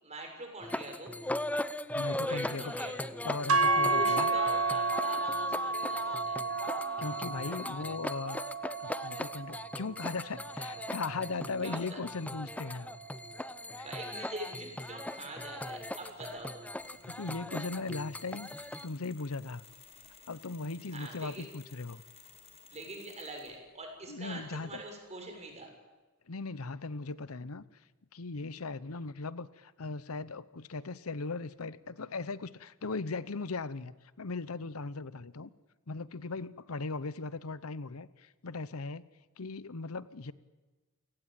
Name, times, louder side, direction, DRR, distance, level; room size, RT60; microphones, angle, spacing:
voice 1, 0.0-1.1 2.2-3.1 3.9-6.4 11.6-12.0 13.8-16.7 20.9-21.4 22.7-25.7, right 2 dB, 30° right, 3 dB, 6.8 m, -44 dB
sound 1, 0.6-18.9, left 1 dB, 5° left, 0.7 m, -39 dB
voice 2, 1.9-2.7 3.2-4.3 7.0-8.4 8.8-12.9 13.7-13.9 17.1-19.6 20.3-22.0 24.1-24.8 26.3-27.6 28.1-35.5 35.9-39.0 39.4-40.3, left 3 dB, 75° left, 17 dB, 0.9 m, -38 dB
sound 2, 3.5-11.7, right 2 dB, 80° right, 1.5 m, -32 dB
Mechanisms, 15.6-16.4 16.8-23.7, left 6 dB, 30° left, 5.3 m, -57 dB
29.0 x 18.0 x 9.1 m, 1.2 s
head